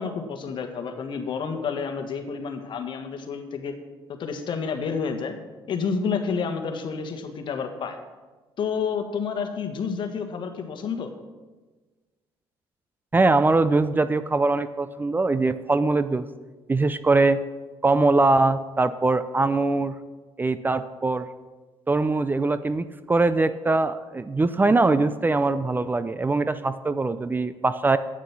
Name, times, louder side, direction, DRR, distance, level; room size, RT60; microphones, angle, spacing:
voice 1, 0.0-3.7 4.1-5.4 5.7-8.0 8.6-11.1, left 5 dB, 55° left, 6 dB, 1.5 m, -29 dB
voice 2, 13.1-16.3 16.7-17.4 17.8-20.0 20.4-21.3 21.9-28.0, right 3 dB, 20° right, 13 dB, 0.5 m, -22 dB
9.1 x 8.8 x 6.0 m, 1.3 s
cardioid pair, 85°, 9 cm